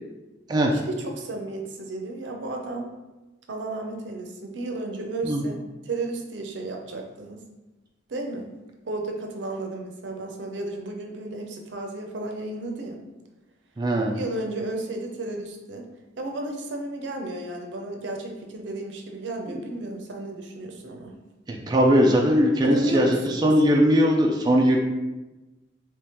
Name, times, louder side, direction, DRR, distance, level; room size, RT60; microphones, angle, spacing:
voice 1, 0.7-2.9 3.5-5.6 5.9-7.4 8.1-8.5 8.8-13.0 14.1-15.9 16.2-21.1 22.6-23.5, right 2 dB, 75° right, 2 dB, 0.6 m, -33 dB
voice 2, 13.8-14.1 19.5-19.6 21.5-24.8, equal, 25° right, 0 dB, 0.3 m, -20 dB
3.5 x 3.0 x 2.9 m, 1.1 s
head